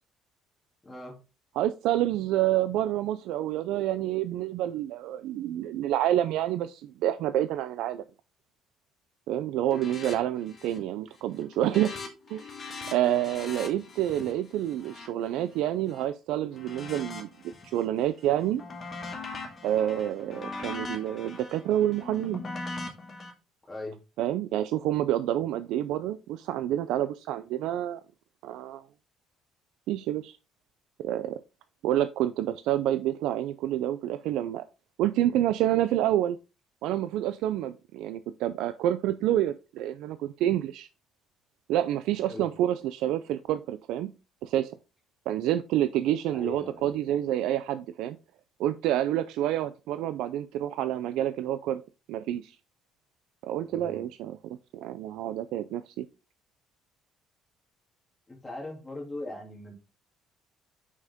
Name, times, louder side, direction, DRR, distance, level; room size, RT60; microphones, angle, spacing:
voice 1, 0.8-1.2 12.9-13.3 23.7-24.0 42.3-42.5 46.3-47.0 53.7-54.1 58.3-59.7, left 2 dB, 10° left, -1 dB, 2.6 m, -40 dB
voice 2, 1.6-8.0 9.3-11.9 12.3-12.6 12.9-18.6 19.6-22.4 24.2-28.0 28.4-28.8 29.9-30.4 31.0-31.4 31.8-34.6 35.0-36.4 36.8-40.9 41.7-44.1 44.4-44.7 45.3-48.2 48.6-51.8 52.1-52.6 53.4-56.1, right 12 dB, 80° right, 12 dB, 0.4 m, -28 dB
sound 1, 9.7-10.2 10.4-10.9 11.2-16.0 16.5-17.8 18.2-23.3, left 3 dB, 30° left, 1.6 m, -41 dB
6.3 x 5.6 x 3.6 m, 0.30 s
cardioid pair, 155°, 0 cm